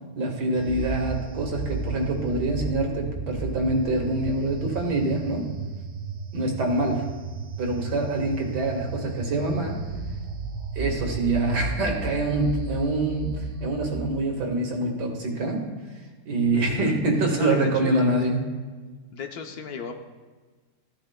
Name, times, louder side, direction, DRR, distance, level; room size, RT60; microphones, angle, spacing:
voice 1, 0.2-5.5 6.3-7.1 7.6-9.8 10.8-15.6 16.3-18.4, right 2 dB, 65° right, 1 dB, 2.0 m, -25 dB
sound 1, 0.5-14.1, right 3 dB, 45° right, 1.4 m, -34 dB
voice 2, 16.5-18.2 19.1-20.0, left 5 dB, 65° left, 4 dB, 1.1 m, -36 dB
14.5 x 10.5 x 2.2 m, 1.4 s
omnidirectional pair, 1.9 m